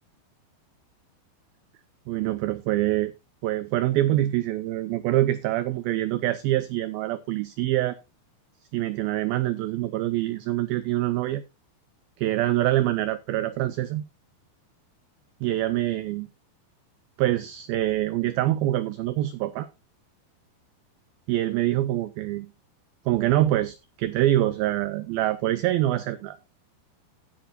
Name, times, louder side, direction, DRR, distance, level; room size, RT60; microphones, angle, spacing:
voice 1, 2.1-3.1 3.4-8.0 8.7-11.4 12.2-14.0 15.4-16.3 17.2-19.7 21.3-22.5 23.1-26.4, right 14 dB, 90° right, 2.1 m, -25 dB
15.5 x 8.6 x 2.7 m
omnidirectional pair, 5.0 m